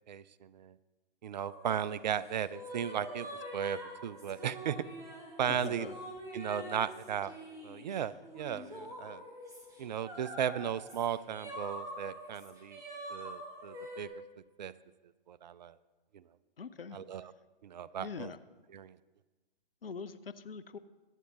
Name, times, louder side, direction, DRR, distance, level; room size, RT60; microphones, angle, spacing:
voice 1, 0.1-0.7 1.2-4.8 5.4-5.9 6.3-7.3 7.6-9.2 9.8-12.8 13.1-14.1 14.6-14.7 15.3-15.8 16.1-16.2 16.9-17.3 17.6-18.3 18.7-19.0, right 9 dB, 50° right, 18 dB, 0.5 m, -36 dB
sound 1, 1.4-14.0, right 1 dB, 10° right, 1.6 m, -46 dB
voice 2, 5.5-6.0 16.6-17.2 18.0-18.4 19.8-20.8, left 5 dB, 75° left, 13 dB, 0.7 m, -43 dB
23.0 x 8.3 x 3.0 m, 1.2 s
figure-of-eight pair, 115°, 29 cm